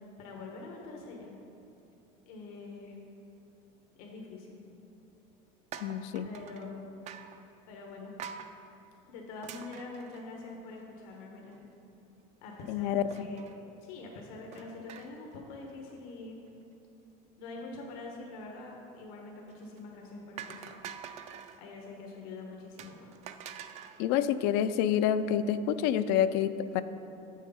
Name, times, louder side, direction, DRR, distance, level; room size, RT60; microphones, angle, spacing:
voice 1, 0.2-1.3 2.3-3.0 4.0-4.6 6.2-6.9 7.7-8.1 9.1-11.6 12.4-13.5 13.8-16.4 17.4-20.9 21.6-23.1, left 3 dB, 85° left, 0 dB, 1.1 m, -45 dB
sound 1, 5.7-6.7 7.1-7.4 8.2-8.5 9.4-10.8 11.2-11.3 11.5-11.6 13.1-13.6 14.5-15.3 15.6-15.9 19.5-19.8 20.4-21.6 22.8-24.0, right 8 dB, 40° right, 0.4 m, -46 dB
voice 2, 5.8-6.3 12.7-13.0 24.0-26.8, left 10 dB, 65° left, 12 dB, 0.4 m, -28 dB
6.9 x 6.4 x 5.5 m, 2.9 s
cardioid pair, 140°, 18 cm